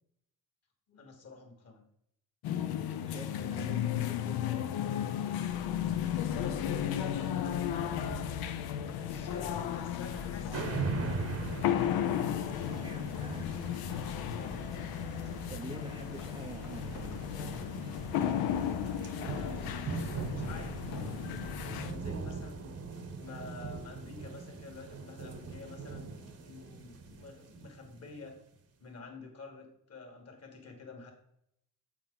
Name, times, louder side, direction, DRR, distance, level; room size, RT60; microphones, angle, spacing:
voice 1, 0.9-1.8 7.7-8.3 8.9-11.4 14.3-14.6 18.8-20.8 21.7-22.8 23.2-28.3 28.8-31.1, left 3 dB, 45° left, 3 dB, 1.7 m, -49 dB
sound 1, 2.4-21.9, left 10 dB, 85° left, 0.6 m, -34 dB
voice 2, 3.0-5.3 12.6-13.5 15.5-17.6, right 3 dB, 15° right, 3 dB, 0.4 m, -47 dB
sound 2, 5.5-22.7, left 1 dB, 65° left, 1.2 m, -46 dB
sound 3, 10.5-28.3, right 4 dB, 45° right, 0.9 m, -41 dB
7.6 x 4.4 x 3.8 m, 0.76 s
cardioid pair, 105°, 36 cm